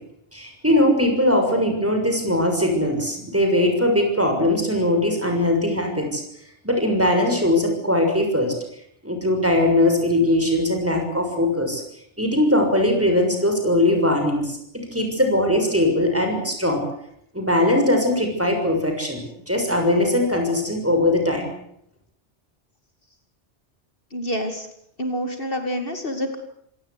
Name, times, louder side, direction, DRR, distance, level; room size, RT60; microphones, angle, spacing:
voice 1, 0.3-6.2 6.6-8.5 9.0-11.8 12.2-14.6 14.9-16.8 17.3-21.5, left 1 dB, 10° right, 4 dB, 6.5 m, -20 dB
voice 2, 24.1-24.7 25.0-26.4, equal, 50° left, 6 dB, 2.6 m, -27 dB
26.5 x 18.0 x 8.2 m, 0.72 s
omnidirectional pair, 1.2 m